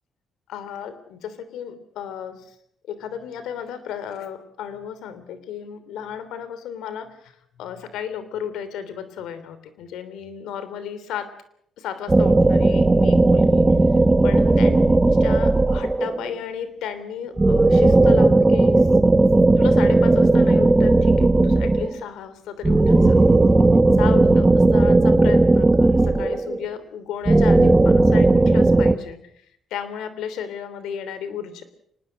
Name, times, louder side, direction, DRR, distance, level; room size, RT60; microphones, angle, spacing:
voice 1, 0.5-2.3 2.9-7.3 7.6-11.3 11.8-13.6 14.2-14.8 15.2-18.8 19.6-23.2 24.0-29.2 29.7-31.6, left 8 dB, 85° left, 12 dB, 3.2 m, -33 dB
sound 1, 12.1-16.3 17.4-22.0 22.6-26.6 27.2-28.9, right 2 dB, 20° right, 1.2 m, -16 dB
24.5 x 20.0 x 6.5 m, 0.71 s
cardioid pair, 90°, 0 cm